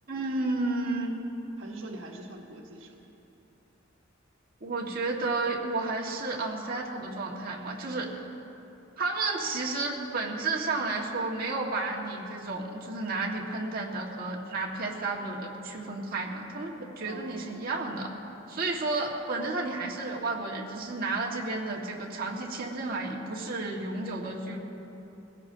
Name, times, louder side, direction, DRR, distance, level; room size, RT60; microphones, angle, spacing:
voice 1, 0.1-1.3 4.6-8.1 9.0-18.1 18.5-24.6, right 3 dB, 50° right, -2 dB, 1.8 m, -32 dB
voice 2, 1.6-3.1 17.0-17.9, right 1 dB, 85° right, 0 dB, 1.4 m, -44 dB
22.0 x 16.0 x 2.9 m, 3.0 s
head